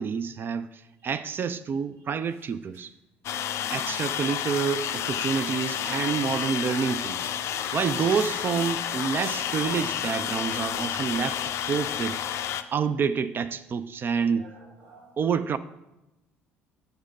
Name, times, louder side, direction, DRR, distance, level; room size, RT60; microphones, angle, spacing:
voice 1, 0.0-2.9 3.7-7.3 7.7-12.2 12.7-14.4 15.2-15.6, right 6 dB, 35° right, 0.3 m, -28 dB
sound 1, 3.2-12.6, left 10 dB, 45° left, 0.4 m, -30 dB
voice 2, 7.4-8.1 10.1-10.3 14.1-15.2, right 3 dB, 50° right, 1.9 m, -51 dB
6.4 x 4.9 x 5.2 m
figure-of-eight pair, 55°, 6 cm